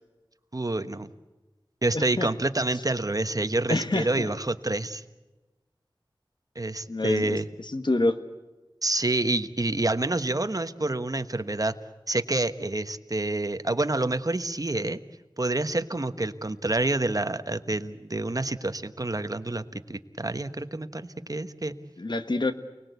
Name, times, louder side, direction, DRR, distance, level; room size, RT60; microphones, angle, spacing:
voice 1, 0.5-1.1 1.8-5.0 6.5-7.4 8.8-11.7 12.1-15.0 15.4-21.7, right 2 dB, 40° right, 10 dB, 1.2 m, -28 dB
voice 2, 1.9-2.3 3.7-4.3 6.9-7.4 7.7-8.2 22.0-22.5, left 2 dB, 60° left, 9 dB, 1.7 m, -27 dB
29.0 x 20.0 x 8.2 m, 1.1 s
wide cardioid pair, 55°, 9 cm